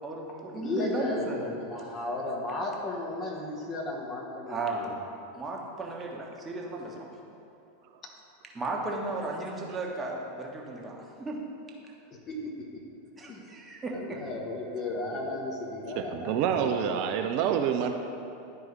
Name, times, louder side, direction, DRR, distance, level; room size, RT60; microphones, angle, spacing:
voice 1, 0.0-1.6 4.5-4.9 5.3-7.1 8.5-11.4 13.2-14.2 16.4-16.7, right 2 dB, 20° right, -2 dB, 1.2 m, -35 dB
voice 2, 0.5-4.9 8.0-8.1 12.1-12.8 13.3-13.4 13.9-16.8, left 2 dB, 35° left, -1 dB, 1.3 m, -35 dB
voice 3, 16.0-17.9, right 8 dB, 50° right, 5 dB, 0.4 m, -27 dB
11.0 x 4.5 x 3.3 m, 2.8 s
figure-of-eight pair, 90°, 0 cm